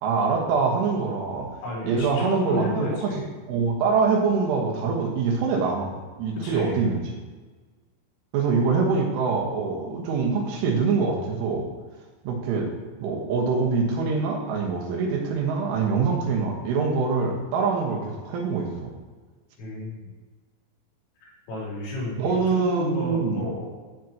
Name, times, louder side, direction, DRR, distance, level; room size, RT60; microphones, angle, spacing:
voice 1, 0.0-1.5 1.8-3.1 3.5-7.0 8.3-11.7 12.3-12.7 13.0-18.9 22.2-23.4, right 4 dB, 75° right, 0 dB, 3.8 m, -24 dB
voice 2, 1.6-3.3 6.4-6.8 19.6-20.1 21.2-23.7, left 1 dB, 85° left, -6 dB, 5.9 m, -32 dB
12.0 x 8.4 x 3.0 m, 1.4 s
omnidirectional pair, 5.9 m